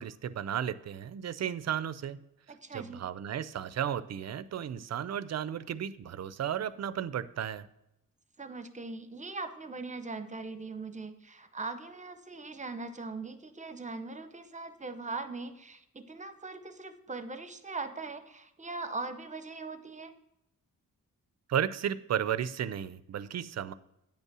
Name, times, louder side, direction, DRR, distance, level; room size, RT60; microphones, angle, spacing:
voice 1, 0.0-2.2 2.7-7.7 21.5-23.7, right 9 dB, 55° right, 15 dB, 0.5 m, -34 dB
voice 2, 2.5-3.0 8.4-20.1, right 3 dB, 20° right, 9 dB, 0.8 m, -40 dB
9.0 x 5.5 x 6.1 m, 0.83 s
wide cardioid pair, 115°, 32 cm